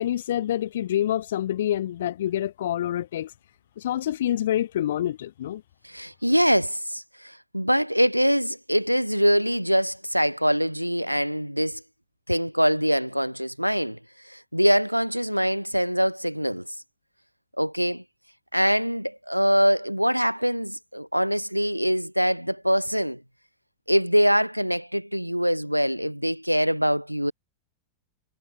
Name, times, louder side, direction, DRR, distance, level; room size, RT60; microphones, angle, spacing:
voice 1, 0.0-3.3 3.8-5.6, left 11 dB, 60° left, 1.4 m, -27 dB
voice 2, 5.8-11.8 12.3-14.0 14.2-16.7 17.6-18.0 18.5-23.2 23.9-27.3, equal, 90° right, 0.4 m, -23 dB
figure-of-eight pair, 90°, 0 cm